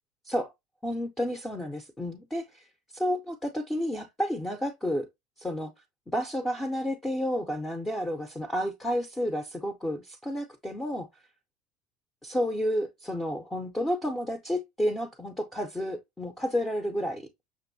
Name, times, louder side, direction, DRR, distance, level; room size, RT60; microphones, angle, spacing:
voice 1, 0.8-5.1 5.4-5.7 6.1-11.1 12.2-17.3, equal, 10° left, 0.5 m, -31 dB
6.0 x 2.5 x 2.6 m
cardioid pair, 150°, 2 cm